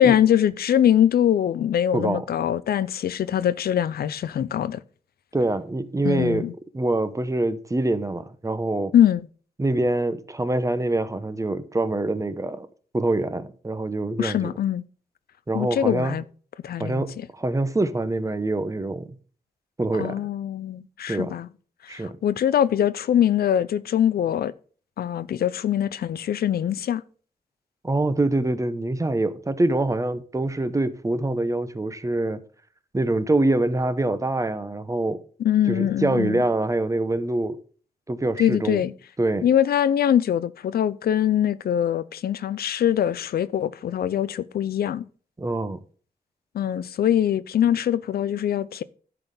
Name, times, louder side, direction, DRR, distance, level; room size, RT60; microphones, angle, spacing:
voice 1, 0.0-4.8 6.0-6.5 8.9-9.2 14.2-14.8 15.5-16.2 16.6-17.0 20.0-21.5 21.8-24.5 25.0-27.0 35.4-36.4 38.4-38.9 39.4-45.1 46.5-48.8, left 10 dB, 90° left, 0.5 m, -22 dB
voice 2, 5.3-6.5 6.7-8.9 9.6-12.7 12.9-14.5 15.5-16.1 16.8-19.2 19.8-20.2 21.1-21.3 21.9-22.2 27.8-32.4 32.9-35.2 35.7-37.6 38.1-38.8 39.2-39.5 45.4-45.8, right 2 dB, 20° right, 0.8 m, -25 dB
11.0 x 4.1 x 6.7 m
wide cardioid pair, 90°, 15 cm